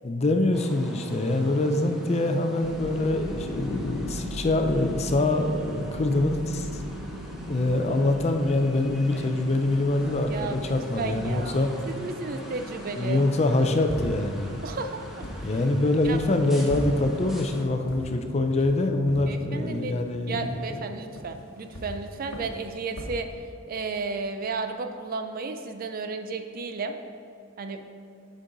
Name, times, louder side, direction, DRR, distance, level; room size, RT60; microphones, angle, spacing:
voice 1, 0.0-6.7 7.5-11.7 13.0-14.5 15.4-20.4 20.7-20.8, left 2 dB, 30° left, 6 dB, 0.4 m, -24 dB
sound 1, 0.5-17.6, equal, ahead, 0.9 m, -42 dB
sound 2, 2.6-19.2, right 1 dB, 80° right, 0.7 m, -41 dB
voice 2, 10.3-11.6 11.9-13.2 14.6-15.5 16.0-16.2 19.3-19.9 20.3-23.3 23.7-27.0 27.6-27.8, right 4 dB, 40° right, 7 dB, 0.4 m, -33 dB
sound 3, 13.6-23.2, equal, 70° left, 1.0 m, -40 dB
8.4 x 5.3 x 3.9 m, 2.6 s
head